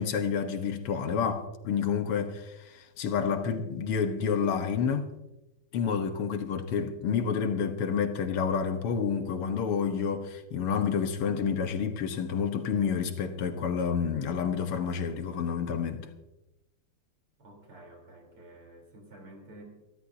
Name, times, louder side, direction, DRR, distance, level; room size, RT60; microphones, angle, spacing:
voice 1, 0.0-5.1 5.7-16.1, left 6 dB, 90° left, 2.1 m, -29 dB
voice 2, 17.4-19.6, right 1 dB, 75° right, 4.6 m, -50 dB
24.5 x 13.0 x 2.7 m
omnidirectional pair, 2.4 m